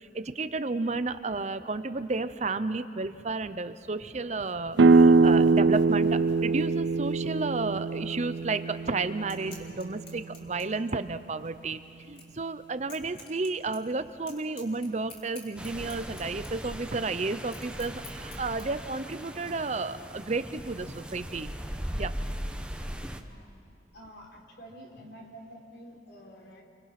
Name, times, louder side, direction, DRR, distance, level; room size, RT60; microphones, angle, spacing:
voice 1, 0.0-11.8 12.1-21.5 21.9-22.2, right 3 dB, 40° right, 12 dB, 0.7 m, -32 dB
sound 1, 4.8-10.3, right 3 dB, 90° right, 0.6 m, -23 dB
sound 2, 9.1-18.6, left 3 dB, 30° left, 3.6 m, -52 dB
sound 3, 15.6-23.2, equal, 5° right, 1.0 m, -38 dB
voice 2, 23.1-23.5 23.9-26.6, equal, 70° left, -1 dB, 4.4 m, -49 dB
30.0 x 24.5 x 5.9 m, 2.6 s
head